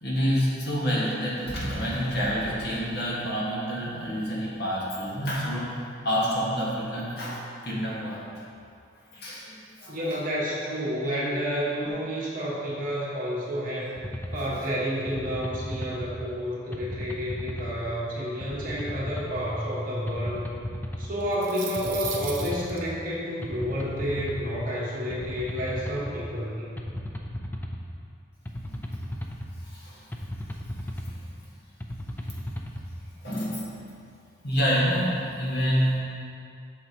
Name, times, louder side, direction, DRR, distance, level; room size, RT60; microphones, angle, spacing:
voice 1, 0.0-5.6 6.0-7.4 7.6-8.2 9.1-10.0 14.4-14.5 28.7-28.8 29.6-30.1 31.0-31.2 33.1-33.7 34.4-36.0, equal, 55° left, -6 dB, 1.6 m, -28 dB
voice 2, 9.9-13.9 14.3-20.4 21.0-26.8, equal, 45° right, -6 dB, 1.5 m, -30 dB
sound 1, 14.0-14.4 15.1-16.1 16.7-17.8 18.4-19.4 20.1-21.1 21.8-22.8 23.4-24.5 25.1-26.1 26.8-27.8 28.4-29.5 30.1-31.2 31.8-32.8, left 1 dB, 10° left, 0.4 m, -35 dB
sound 2, 21.2-22.8, right 7 dB, 75° right, 0.8 m, -36 dB
8.2 x 6.0 x 2.9 m, 2.5 s
head